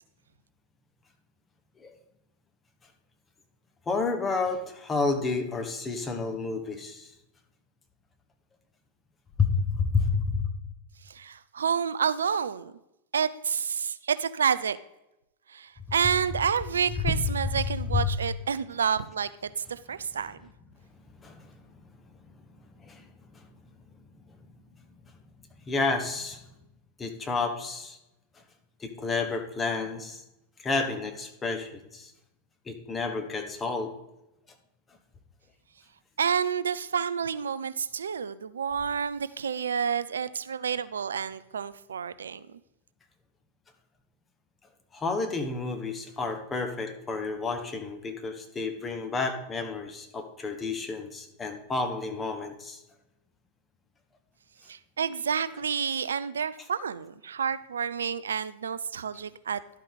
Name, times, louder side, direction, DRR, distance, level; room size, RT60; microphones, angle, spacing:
voice 1, 3.9-7.1 9.4-10.4 17.0-17.3 17.9-18.1 21.2-21.5 22.8-23.1 23.3-23.4 25.6-26.4 27.0-28.0 28.8-30.2 30.6-32.1 32.7-33.9 44.9-52.8, left 4 dB, 20° left, 5 dB, 1.0 m, -30 dB
voice 2, 11.1-12.7 13.1-14.8 15.5-20.4 36.2-42.6 54.7-59.6, right 7 dB, 70° right, 16 dB, 0.3 m, -29 dB
11.5 x 5.0 x 4.1 m, 0.89 s
figure-of-eight pair, 90°, 0 cm